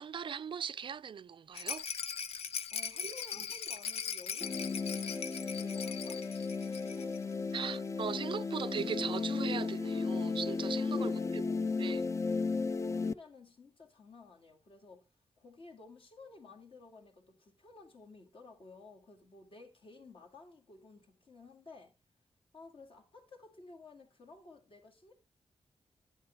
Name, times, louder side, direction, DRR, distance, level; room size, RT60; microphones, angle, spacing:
voice 1, 0.0-1.9 3.0-3.5 7.5-12.0, right 7 dB, 50° right, 0.4 m, -39 dB
Rattle, 1.5-7.2 7.5-7.6 7.9-8.0, left 6 dB, 80° left, 0.6 m, -40 dB
voice 2, 2.7-6.2 6.6-7.9 10.9-11.8 12.8-15.1 15.4-21.9 22.5-25.1, left 3 dB, 60° left, 2.1 m, -54 dB
sound 1, 4.4-13.1, left 4 dB, 30° left, 0.4 m, -34 dB
9.5 x 7.3 x 3.3 m
cardioid pair, 90°, 10 cm